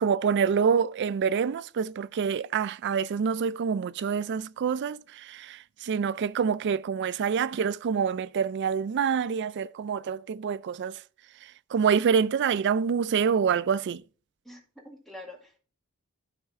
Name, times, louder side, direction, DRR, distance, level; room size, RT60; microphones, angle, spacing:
voice 1, 0.0-11.0 11.7-14.0, right 6 dB, 55° right, 0.3 m, -26 dB
voice 2, 14.5-15.6, left 1 dB, ahead, 1.9 m, -46 dB
12.5 x 4.5 x 3.6 m
head